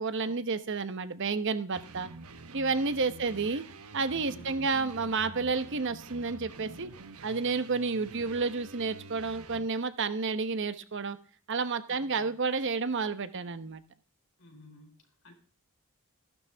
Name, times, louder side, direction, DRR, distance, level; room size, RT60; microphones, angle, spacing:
voice 1, 0.0-2.1 2.5-3.6 3.9-6.9 7.2-11.2 11.5-13.8, right 4 dB, 55° right, 12 dB, 0.9 m, -30 dB
sound 1, 1.7-9.7, right 3 dB, 75° right, 1.1 m, -47 dB
voice 2, 4.3-4.7 11.9-12.3 14.4-15.3, left 1 dB, 60° left, 3 dB, 4.3 m, -54 dB
14.5 x 12.0 x 3.5 m, 0.40 s
head